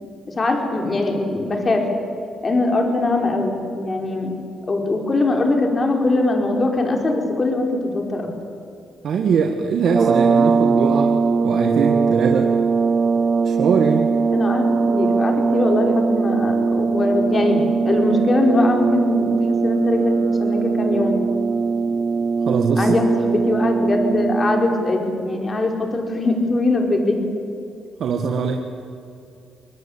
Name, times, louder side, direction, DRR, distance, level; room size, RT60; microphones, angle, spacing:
voice 1, 0.3-1.9 2.4-4.4 4.7-8.3 14.3-21.2 22.8-27.3, left 2 dB, 30° left, 2 dB, 5.0 m, -21 dB
voice 2, 9.0-11.2 11.4-12.5 13.4-14.1 22.5-23.0 28.0-28.6, right 6 dB, 65° right, 3 dB, 1.9 m, -21 dB
sound 1, 9.9-25.0, right 4 dB, 40° right, 0.8 m, -20 dB
24.5 x 21.0 x 8.8 m, 2.5 s
cardioid pair, 90°, 0 cm